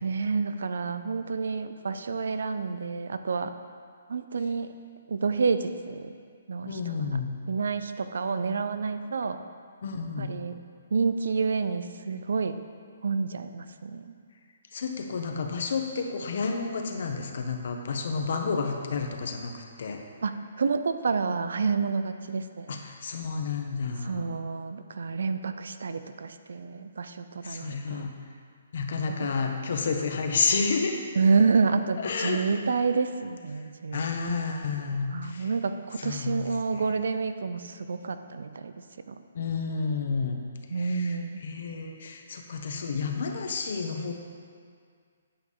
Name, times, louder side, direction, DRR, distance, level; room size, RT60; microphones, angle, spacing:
voice 1, 0.0-3.5 4.1-4.7 5.1-6.1 6.5-6.8 7.5-9.4 10.2-10.5 10.9-12.6 13.0-14.1 20.2-22.8 24.0-28.1 29.2-29.3 31.2-34.0 35.1-38.7 39.1-39.2 40.7-41.4, right 4 dB, 75° right, 10 dB, 0.6 m, -28 dB
voice 2, 6.7-7.3 9.8-10.3 14.7-20.0 22.7-24.2 27.4-28.1 28.7-31.0 32.0-32.4 33.9-35.5 36.0-36.4 39.3-40.4 40.8-41.2 41.4-44.1, left 5 dB, 55° left, 3 dB, 1.1 m, -30 dB
9.0 x 6.9 x 5.6 m, 2.1 s
hypercardioid pair, 165°, 0 cm